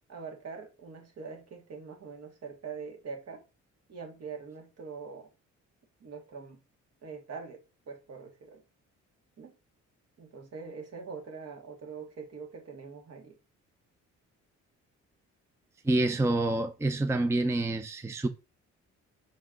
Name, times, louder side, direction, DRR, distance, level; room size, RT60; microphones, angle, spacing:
voice 1, 0.1-3.4 3.9-5.3 6.0-6.6 7.0-8.6 9.4-9.6 10.2-13.4, right 5 dB, 55° right, 1.9 m, -43 dB
voice 2, 15.8-18.3, right 2 dB, 10° right, 0.5 m, -27 dB
6.3 x 4.4 x 3.8 m
cardioid pair, 90°, 30 cm